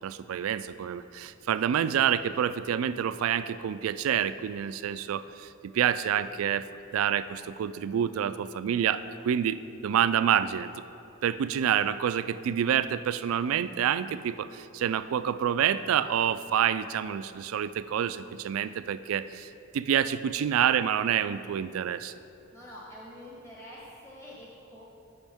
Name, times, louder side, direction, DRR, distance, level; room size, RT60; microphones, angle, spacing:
voice 1, 0.0-6.7 6.9-10.8 11.2-22.1, right 9 dB, 75° right, 13 dB, 0.3 m, -28 dB
voice 2, 22.5-24.8, equal, 15° left, -5 dB, 1.1 m, -46 dB
14.5 x 5.3 x 3.5 m, 2.7 s
head